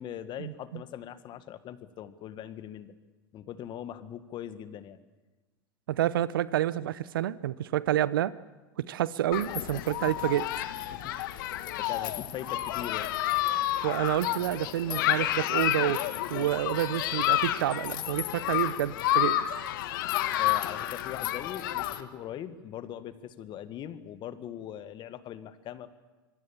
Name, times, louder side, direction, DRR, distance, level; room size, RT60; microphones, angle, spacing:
voice 1, 0.0-2.9 3.3-5.0 9.5-9.8 10.9-11.2 11.8-13.1 20.4-25.9, left 10 dB, 40° left, 12 dB, 1.8 m, -41 dB
voice 2, 5.9-8.3 8.8-10.5 13.8-19.4, right 12 dB, 75° right, 18 dB, 0.9 m, -29 dB
Human group actions, 9.3-22.0, left 13 dB, 65° left, 1.6 m, -30 dB
26.0 x 22.5 x 7.4 m, 1.2 s
hypercardioid pair, 90°, 12 cm